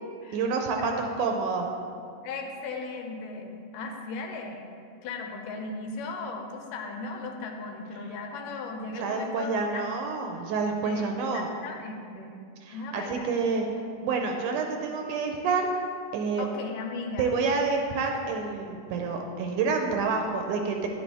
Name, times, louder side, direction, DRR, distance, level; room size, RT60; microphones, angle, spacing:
voice 1, 0.3-1.7 8.9-11.5 12.6-13.7 14.0-15.7 16.1-16.5 17.2-20.9, right 4 dB, 80° right, 3 dB, 2.0 m, -28 dB
voice 2, 2.2-4.7 5.0-9.8 10.8-11.1 11.3-12.4 12.7-13.3 16.4-17.4, left 3 dB, 80° left, 3 dB, 2.3 m, -37 dB
10.0 x 8.4 x 3.4 m, 2.4 s
omnidirectional pair, 3.9 m